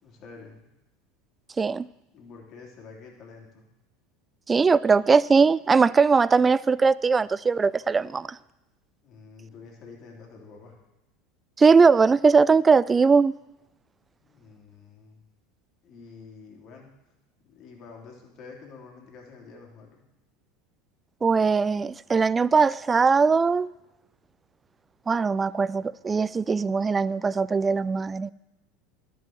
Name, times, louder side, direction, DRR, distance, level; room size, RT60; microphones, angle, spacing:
voice 1, 0.0-0.7 2.1-3.7 9.0-10.8 14.2-15.2 15.8-16.9 17.4-20.1, left 4 dB, 45° left, 2.8 m, -48 dB
voice 2, 4.5-8.4 11.6-13.3 21.2-23.7 25.1-28.3, right 5 dB, 20° right, 0.3 m, -20 dB
11.0 x 5.6 x 7.7 m
hypercardioid pair, 90°, 0 cm